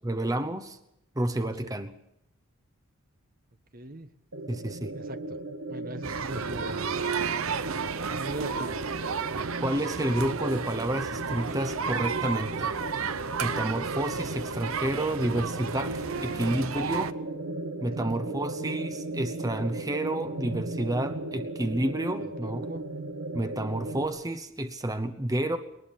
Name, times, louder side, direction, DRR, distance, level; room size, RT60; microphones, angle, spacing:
voice 1, 0.0-0.8 1.2-1.9 4.5-4.9 9.6-12.7 13.4-17.2 17.8-22.7 23.3-25.6, right 1 dB, 15° right, 9 dB, 0.9 m, -30 dB
voice 2, 3.7-4.1 4.9-5.4 5.7-6.9 8.1-8.7 17.9-18.2 22.4-22.8, right 2 dB, 40° right, 9 dB, 1.1 m, -39 dB
sound 1, 4.3-24.0, right 2 dB, 90° right, 2.0 m, -36 dB
sound 2, 6.0-17.1, right 6 dB, 70° right, 0.8 m, -32 dB
21.5 x 19.0 x 7.0 m, 0.81 s
head